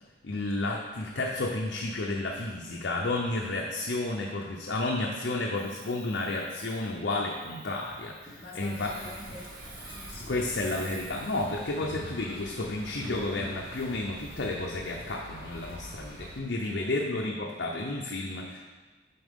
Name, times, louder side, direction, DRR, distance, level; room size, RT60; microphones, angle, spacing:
voice 1, 0.2-8.9 10.3-18.6, left 2 dB, 75° left, -1 dB, 0.7 m, -31 dB
Hiss, 5.5-11.8, right 2 dB, 70° right, 2.3 m, -51 dB
sound 1, 7.7-15.1 16.0-16.1 16.4-16.5, left 1 dB, 5° right, 1.2 m, -48 dB
voice 2, 8.4-11.1 16.6-17.1, left 2 dB, 30° left, -5 dB, 1.2 m, -47 dB
sound 2, 8.8-16.4, right 1 dB, 55° right, 1.2 m, -46 dB
8.6 x 4.3 x 3.7 m, 1.3 s
head